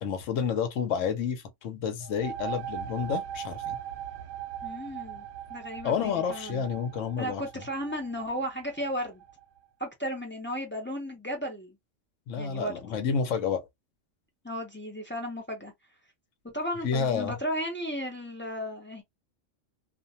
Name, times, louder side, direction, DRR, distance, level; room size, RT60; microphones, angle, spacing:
voice 1, 0.0-3.8 5.8-7.6 12.3-13.7 16.8-17.4, left 6 dB, 70° left, 1.0 m, -30 dB
sound 1, 2.0-9.4, right 10 dB, 65° right, 0.5 m, -39 dB
voice 2, 4.6-5.2 5.5-6.7 7.2-9.2 9.8-11.7 12.3-13.0 14.4-15.7 16.4-19.0, equal, 15° left, 0.4 m, -34 dB
2.5 x 2.1 x 2.7 m
omnidirectional pair, 1.4 m